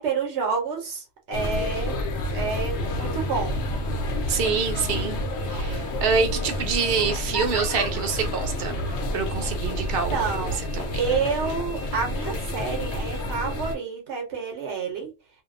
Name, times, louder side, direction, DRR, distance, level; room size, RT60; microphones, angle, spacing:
voice 1, 0.0-2.0 2.3-3.6 9.7-9.8 10.1-10.6 11.0-15.1, right 5 dB, 90° right, 1.1 m, -29 dB
sound 1, 1.3-13.7, left 1 dB, 90° left, 1.0 m, -29 dB
voice 2, 4.3-5.2 5.4-8.8 9.1-11.0, right 5 dB, 65° right, 0.7 m, -26 dB
Laughter, 5.3-5.8 6.1-6.2 6.6-9.0, left 1 dB, 25° left, 0.9 m, -38 dB
2.6 x 2.0 x 2.4 m
omnidirectional pair, 1.1 m